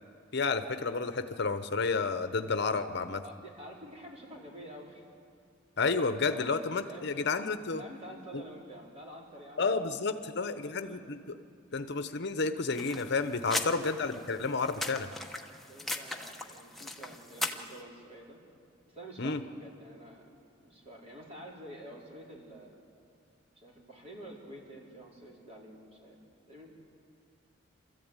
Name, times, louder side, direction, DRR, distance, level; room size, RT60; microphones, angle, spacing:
voice 1, 0.3-3.2 5.8-7.8 8.3-8.4 9.6-11.4 11.7-15.1 19.2-19.4, left 4 dB, 55° left, 10 dB, 0.8 m, -31 dB
voice 2, 3.2-5.0 5.8-6.0 6.3-7.4 7.7-11.1 11.7-11.9 15.4-18.4 18.9-20.3 20.6-22.8 23.5-26.2 26.5-26.8, right 1 dB, 30° right, -3 dB, 4.2 m, -49 dB
sound 1, 12.7-17.8, left 2 dB, ahead, 1.1 m, -38 dB
27.5 x 14.0 x 8.9 m, 2.3 s
head